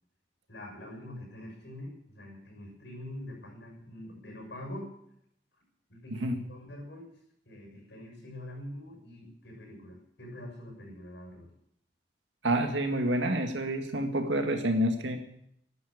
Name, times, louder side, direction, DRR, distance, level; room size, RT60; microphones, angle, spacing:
voice 1, 0.5-4.9 5.9-7.1 7.4-11.5, left 1 dB, 65° left, 0 dB, 6.7 m, -44 dB
voice 2, 12.4-15.2, right 1 dB, 80° right, 6 dB, 2.0 m, -28 dB
12.5 x 10.0 x 8.7 m, 0.73 s
head